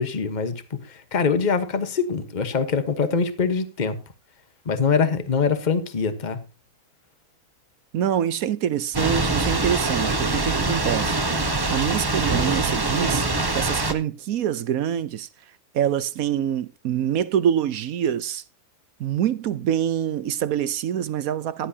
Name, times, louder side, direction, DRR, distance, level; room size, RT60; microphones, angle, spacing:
voice 1, 0.0-4.0 4.6-6.4, left 5 dB, 30° left, 1.3 m, -24 dB
voice 2, 7.9-11.2 11.7-13.3 13.5-15.3 15.7-18.4 19.0-21.7, right 10 dB, 65° right, 1.1 m, -25 dB
Thunder / Rain, 8.9-13.9, right 3 dB, 20° right, 0.9 m, -24 dB
15.5 x 11.0 x 2.8 m
omnidirectional pair, 1.7 m